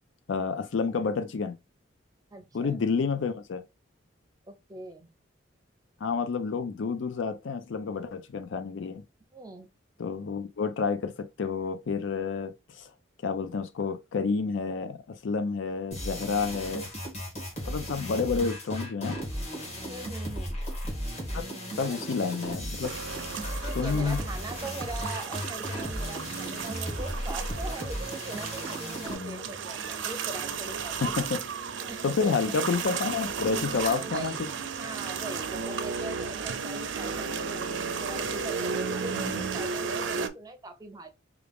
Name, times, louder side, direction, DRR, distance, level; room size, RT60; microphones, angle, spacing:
voice 1, 0.3-1.6 2.5-3.6 6.0-9.0 10.0-12.9 13.2-16.9 17.7-19.2 21.3-22.9 23.7-24.2 29.1-29.5 31.0-31.5 32.0-34.3 39.2-39.4, left 5 dB, 65° left, 0.4 m, -30 dB
voice 2, 2.3-2.8 4.5-5.1 9.3-9.7 19.9-20.6 21.8-22.1 23.6-31.1 31.9-32.4 33.7-41.1, right 2 dB, 20° right, 0.6 m, -41 dB
sound 1, 15.9-29.1, equal, 35° left, 1.9 m, -35 dB
sound 2, 22.8-40.3, right 5 dB, 65° right, 0.5 m, -34 dB
4.8 x 2.4 x 3.4 m
head